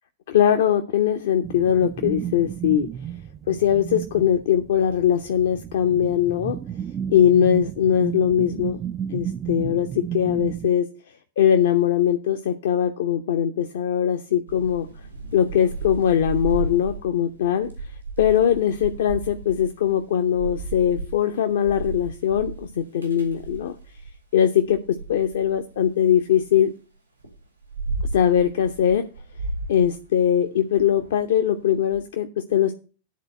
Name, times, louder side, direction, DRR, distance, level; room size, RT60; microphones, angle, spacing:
voice 1, 0.3-2.9 3.5-6.6 7.1-8.8 9.1-10.8 11.4-14.9 15.3-17.7 18.2-23.7 24.3-24.8 25.1-26.7 28.1-29.0 29.7-32.8, left 9 dB, 60° left, 6 dB, 0.7 m, -21 dB
sound 1, 1.4-10.7, right 10 dB, 25° right, 0.3 m, -32 dB
Thunder / Rain, 14.5-24.2 24.6-26.6 27.2-32.0, right 2 dB, 90° right, 2.4 m, -34 dB
10.5 x 4.1 x 7.6 m, 0.35 s
figure-of-eight pair, 90°, 0 cm